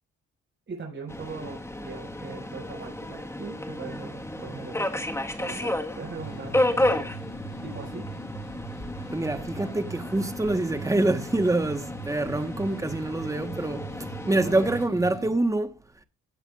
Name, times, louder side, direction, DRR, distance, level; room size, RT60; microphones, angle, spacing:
voice 1, 0.7-4.8 5.4-7.1 7.6-8.0, right 4 dB, 40° right, 5.6 m, -40 dB
Subway metro underground, 1.1-14.9, left 1 dB, 10° left, 1.4 m, -32 dB
sound 1, 6.2-15.3, right 2 dB, 65° left, 4.3 m, -40 dB
voice 2, 9.1-15.8, right 2 dB, 10° right, 1.2 m, -26 dB
16.5 x 8.1 x 2.4 m
cardioid pair, 90°, 30 cm